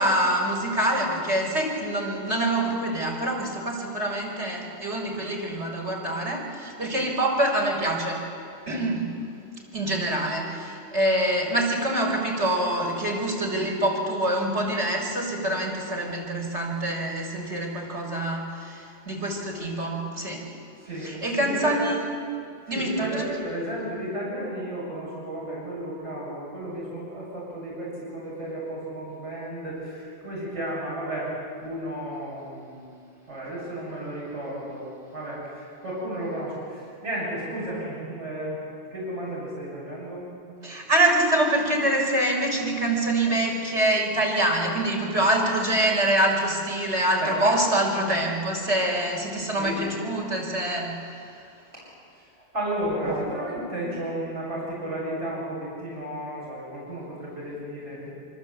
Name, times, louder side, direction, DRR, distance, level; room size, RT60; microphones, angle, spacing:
voice 1, 0.0-8.3 8.7-9.2 9.7-20.5 21.0-22.0 22.7-23.1 40.6-51.2 53.0-53.2, right 1 dB, 75° right, -1 dB, 5.3 m, -25 dB
voice 2, 20.8-21.9 22.7-31.3 31.6-32.9 33.3-38.6 38.9-40.3 47.2-47.4 49.6-50.0 52.1-52.3 52.5-58.1, right 1 dB, 90° right, -7 dB, 7.7 m, -33 dB
26.0 x 25.0 x 8.3 m, 2.5 s
omnidirectional pair, 1.2 m